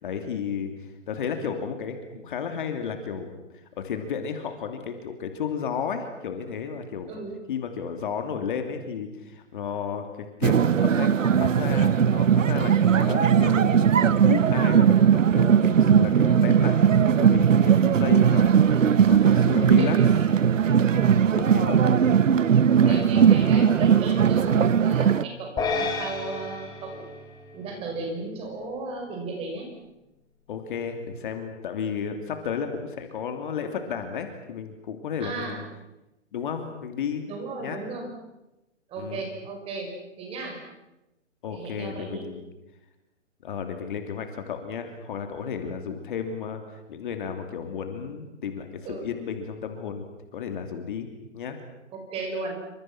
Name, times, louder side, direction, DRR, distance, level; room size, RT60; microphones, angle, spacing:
voice 1, 0.0-7.1 7.5-20.0 20.9-21.8 22.8-23.0 24.4-24.7 30.5-35.6 36.3-37.2 37.6-37.8 39.0-39.2 41.4-42.4 43.4-50.1 50.3-51.1 51.3-51.6, left 7 dB, 40° left, 6 dB, 3.0 m, -33 dB
sound 1, 10.4-25.2, right 8 dB, 85° right, 1.0 m, -19 dB
voice 2, 19.8-20.3 22.6-27.0 27.5-29.7 35.2-35.6 37.3-38.1 38.9-39.9 40.2-40.6 41.5-42.2 48.8-49.1 51.9-52.6, right 3 dB, 15° right, 2 dB, 5.6 m, -35 dB
sound 2, 25.6-28.0, left 4 dB, 10° left, 2.9 m, -31 dB
28.5 x 26.0 x 6.0 m, 0.95 s
hypercardioid pair, 155°, 37 cm